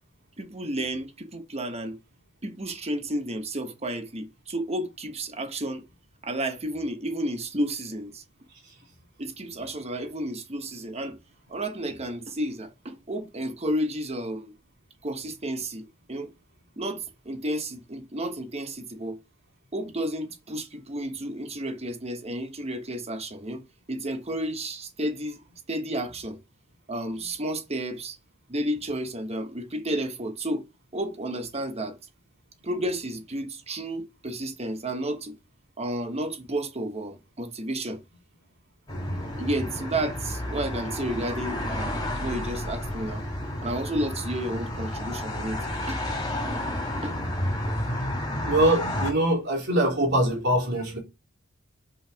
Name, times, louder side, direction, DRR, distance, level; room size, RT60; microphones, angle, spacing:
voice 1, 0.4-2.0 2.4-5.8 6.2-8.2 9.2-11.1 11.5-14.5 15.0-16.3 16.8-19.2 19.7-23.6 23.9-25.4 25.7-26.4 26.9-28.2 28.5-30.6 30.9-31.9 32.6-35.3 35.8-38.0 39.4-43.2 43.6-45.6 45.9-46.0 47.0-47.1, right 1 dB, 30° right, 1.1 m, -31 dB
sound 1, 38.9-49.1, left 1 dB, 20° left, 3.2 m, -31 dB
voice 2, 48.4-51.0, right 1 dB, 55° right, 3.2 m, -23 dB
5.6 x 5.5 x 5.2 m
head